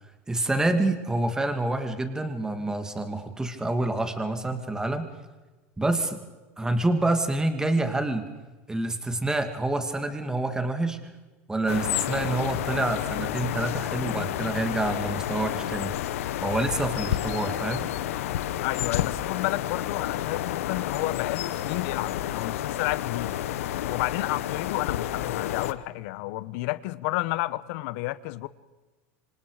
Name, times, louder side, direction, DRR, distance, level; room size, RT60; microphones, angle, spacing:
voice 1, 0.3-5.1 5.8-6.2 6.6-8.3 8.7-11.0 11.5-15.9 16.4-17.9, right 2 dB, 10° right, 2.4 m, -27 dB
sound 1, 11.7-25.7, left 12 dB, 90° left, 1.2 m, -30 dB
voice 2, 18.6-23.4 23.9-28.5, left 19 dB, 70° left, 1.1 m, -31 dB
27.0 x 26.0 x 5.1 m
supercardioid pair, 125°, 7 cm